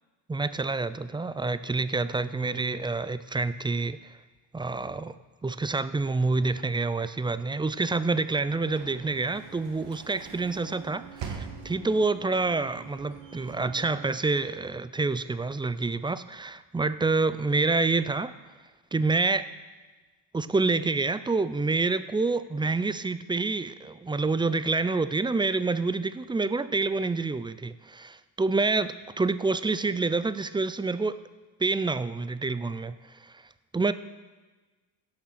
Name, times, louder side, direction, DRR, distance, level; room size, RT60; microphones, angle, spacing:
voice 1, 0.3-4.0 4.5-5.1 5.4-18.3 18.9-19.5 20.3-31.2 31.6-33.0 33.2-33.3 33.7-33.9, right 3 dB, 10° right, 14 dB, 0.4 m, -27 dB
Sliding door / Slam, 7.8-14.8, right 6 dB, 75° right, 1.6 m, -44 dB
16.5 x 5.9 x 5.9 m, 1.3 s
cardioid pair, 75°, 43 cm